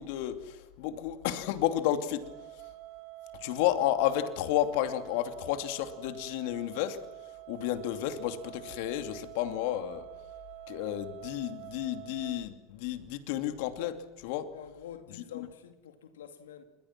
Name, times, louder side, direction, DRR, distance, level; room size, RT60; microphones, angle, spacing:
voice 1, 0.0-2.2 3.4-7.0 7.5-10.1 10.7-14.5 15.3-15.5, left 12 dB, 70° left, 2.7 m, -31 dB
sound 1, 2.2-12.5, right 19 dB, 65° right, 2.4 m, -47 dB
voice 2, 14.5-16.6, left 9 dB, 90° left, 2.5 m, -47 dB
28.5 x 22.5 x 6.0 m
hypercardioid pair, 100°, 0 cm